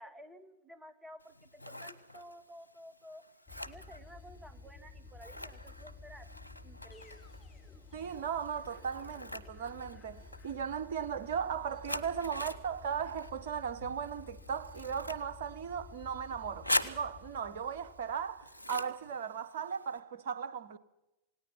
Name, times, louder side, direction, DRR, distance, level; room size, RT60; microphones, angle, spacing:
voice 1, 0.0-3.2 3.6-6.3 6.6-7.3, equal, 10° right, 2.0 m, -53 dB
Scissors, 1.2-20.0, left 1 dB, 90° right, 1.1 m, -44 dB
sound 1, 3.5-18.8, left 3 dB, 20° left, 3.8 m, -53 dB
voice 2, 7.9-20.8, right 7 dB, 55° right, 1.1 m, -37 dB
28.0 x 18.0 x 5.8 m
figure-of-eight pair, 90°, 0 cm